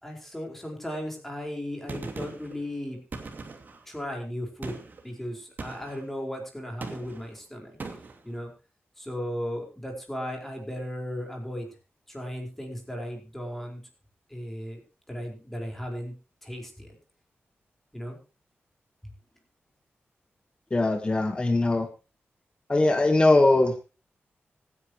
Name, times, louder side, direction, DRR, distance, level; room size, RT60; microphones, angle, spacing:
voice 1, 0.0-3.0 3.9-4.8 5.0-7.8 8.2-8.5 9.0-11.7 12.1-13.8 14.3-14.8 15.1-16.1 16.4-16.9 17.9-18.2, equal, 5° left, 1 dB, 5.0 m, -36 dB
Gunshot gunfire, 1.9-2.6 3.1-3.8 4.6-5.0 5.6-6.0 6.8-7.3 7.8-8.2, right 3 dB, 45° right, 2.6 m, -39 dB
voice 2, 20.7-21.9 22.7-24.0, left 2 dB, 25° left, 5 dB, 1.5 m, -21 dB
25.0 x 10.0 x 3.1 m, 0.30 s
wide cardioid pair, 155°, 4 cm